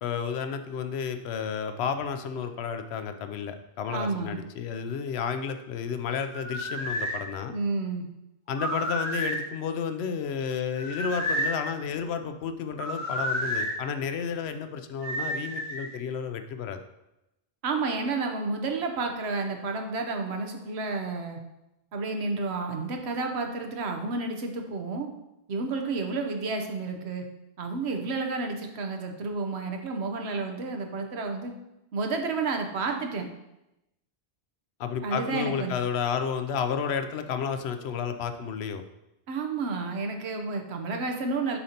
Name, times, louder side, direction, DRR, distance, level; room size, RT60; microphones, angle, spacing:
voice 1, 0.0-7.5 8.5-16.8 34.8-38.8, left 6 dB, 90° left, 8 dB, 0.8 m, -31 dB
voice 2, 3.9-4.4 7.5-8.1 17.6-21.4 21.9-25.1 25.5-27.2 27.6-31.5 31.9-33.3 35.0-35.7 39.3-41.6, right 3 dB, 85° right, 4 dB, 1.1 m, -31 dB
sound 1, 6.3-7.2 8.5-9.4 10.7-11.6 12.8-13.7 15.0-15.9, equal, 15° left, 1.8 m, -30 dB
7.0 x 5.1 x 2.8 m, 0.91 s
omnidirectional pair, 1.1 m